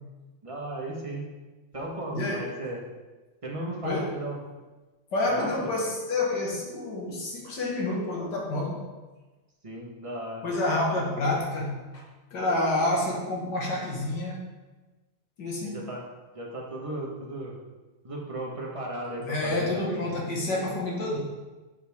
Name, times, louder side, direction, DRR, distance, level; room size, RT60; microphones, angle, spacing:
voice 1, 0.4-1.2 1.7-2.8 3.4-4.4 5.3-5.7 9.6-10.4 15.6-16.0 16.3-17.6 18.0-20.1, right 1 dB, 20° right, -3 dB, 1.1 m, -35 dB
voice 2, 2.1-2.5 3.8-4.2 5.1-8.8 10.4-12.0 12.3-14.4 15.4-15.8 19.2-21.2, left 2 dB, 60° left, -2 dB, 2.2 m, -28 dB
7.2 x 7.1 x 3.6 m, 1.2 s
omnidirectional pair, 2.2 m